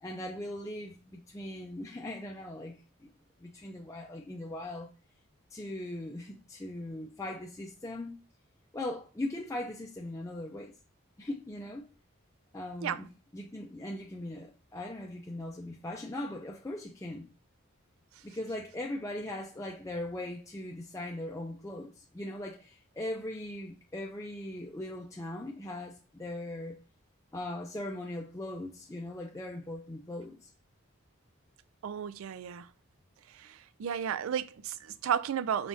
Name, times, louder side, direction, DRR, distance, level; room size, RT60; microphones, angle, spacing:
voice 1, 0.0-2.8 3.0-3.1 3.4-4.9 5.5-8.2 8.7-10.7 11.2-11.9 12.5-13.1 13.3-17.3 18.2-26.8 27.3-30.5, left 1 dB, 15° left, 0.4 m, -39 dB
voice 2, 31.8-32.7 33.3-35.7, right 8 dB, 80° right, 0.3 m, -33 dB
4.8 x 3.4 x 2.7 m
head